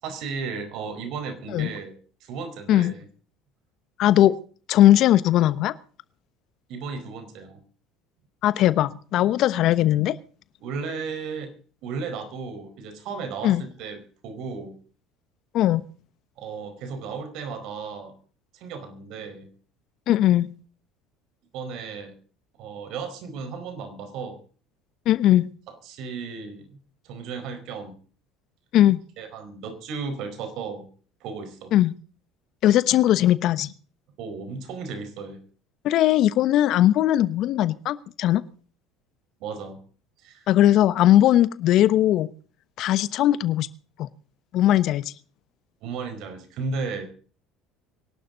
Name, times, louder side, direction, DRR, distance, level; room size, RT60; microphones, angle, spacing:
voice 1, 0.0-3.1 6.7-7.6 10.6-11.5 11.8-14.7 16.4-18.1 18.5-19.5 21.5-22.1 22.6-24.4 25.8-26.8 27.0-27.9 29.2-30.9 31.2-31.7 34.2-35.4 39.4-39.8 40.2-40.5 45.8-47.0, right 5 dB, 65° right, 8 dB, 4.7 m, -34 dB
voice 2, 4.0-4.4 4.7-5.7 8.4-10.1 13.4-13.6 15.5-15.8 20.1-20.5 25.1-25.5 28.7-29.0 31.7-31.9 32.6-33.7 35.8-38.4 40.5-42.3 42.8-43.7 44.0-44.1 44.5-45.0, left 13 dB, 60° left, 16 dB, 1.0 m, -19 dB
24.0 x 12.0 x 4.0 m, 0.41 s
hypercardioid pair, 75°, 0 cm